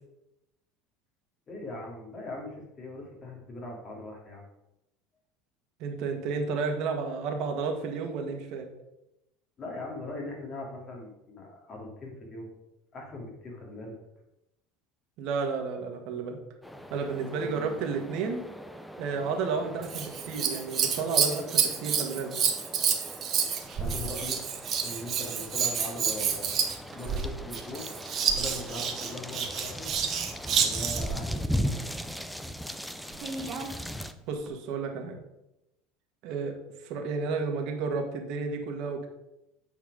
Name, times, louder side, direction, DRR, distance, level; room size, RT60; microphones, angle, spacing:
voice 1, 1.5-4.5 9.6-12.5 12.9-14.0 17.5-17.6 19.6-19.7 23.5-24.4 24.8-26.6 26.9-27.9 28.3-29.9 30.6-31.8, left 2 dB, 35° left, -1 dB, 2.7 m, -40 dB
voice 2, 5.8-8.7 15.2-16.4 16.9-18.4 19.0-22.3 34.3-35.2 36.2-36.5 36.8-39.1, right 4 dB, 60° right, 3 dB, 1.6 m, -32 dB
sound 1, 16.6-34.1, equal, ahead, 0.5 m, -39 dB
Scissors, 19.8-31.2 33.1-33.7 34.5-34.6, right 7 dB, 40° right, 1.3 m, -29 dB
8.5 x 4.6 x 5.0 m, 0.90 s
supercardioid pair, 120°, 0 cm